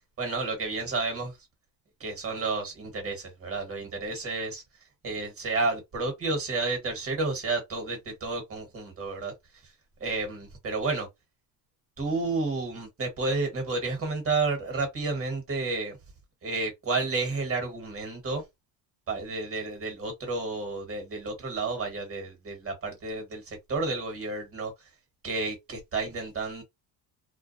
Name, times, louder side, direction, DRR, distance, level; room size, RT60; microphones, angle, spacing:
voice 1, 0.2-1.3 2.0-4.6 5.0-9.3 10.0-11.1 12.0-16.0 16.4-18.4 19.1-24.7 25.2-26.6, right 3 dB, 30° right, 1.4 m, -31 dB
2.4 x 2.1 x 2.6 m
supercardioid pair, 95°, 45 cm